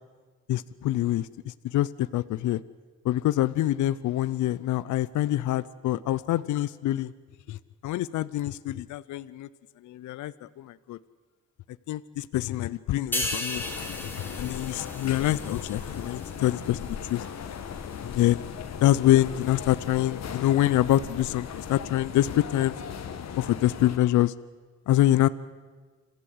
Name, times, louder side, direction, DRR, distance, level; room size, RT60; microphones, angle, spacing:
voice 1, 0.5-2.6 3.0-7.1 7.5-9.5 9.8-11.0 11.9-13.7 14.4-17.2 18.0-18.5 18.8-22.8 23.4-24.3 24.9-25.3, left 14 dB, 75° left, 16 dB, 0.6 m, -25 dB
sound 1, 13.1-16.7 17.0-17.3, left 1 dB, 5° left, 3.1 m, -35 dB
sound 2, 13.5-24.0, left 7 dB, 60° left, 1.8 m, -38 dB
27.0 x 15.0 x 7.9 m, 1.4 s
cardioid pair, 90°, 30 cm